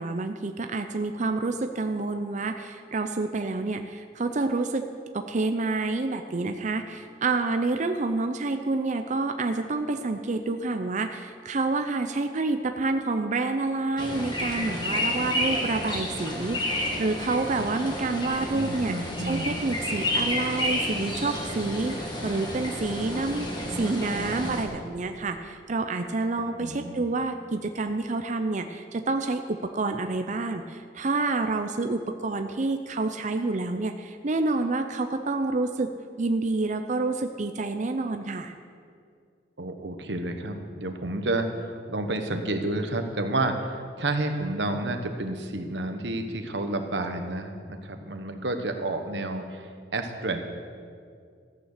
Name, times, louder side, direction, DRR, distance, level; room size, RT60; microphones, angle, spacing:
voice 1, 0.0-4.9 5.1-23.5 23.7-35.9 36.2-38.5, right 3 dB, 40° right, 7 dB, 0.6 m, -28 dB
sound 1, 14.0-24.6, left 1 dB, 25° left, 1.9 m, -30 dB
voice 2, 18.5-19.6 26.6-27.0 39.6-50.4, right 2 dB, 70° right, 6 dB, 1.2 m, -30 dB
14.5 x 9.0 x 6.7 m, 2.2 s
head